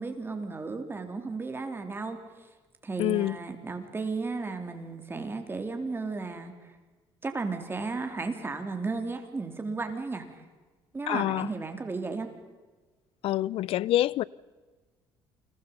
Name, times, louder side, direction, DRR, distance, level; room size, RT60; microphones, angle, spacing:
voice 1, 0.0-2.2 2.8-6.7 7.2-10.4 10.9-12.3, right 3 dB, 25° right, 3.8 m, -34 dB
voice 2, 3.0-3.4 11.1-11.5 13.2-14.2, left 14 dB, 70° left, 0.6 m, -26 dB
29.0 x 23.5 x 5.6 m
cardioid pair, 95°, 10 cm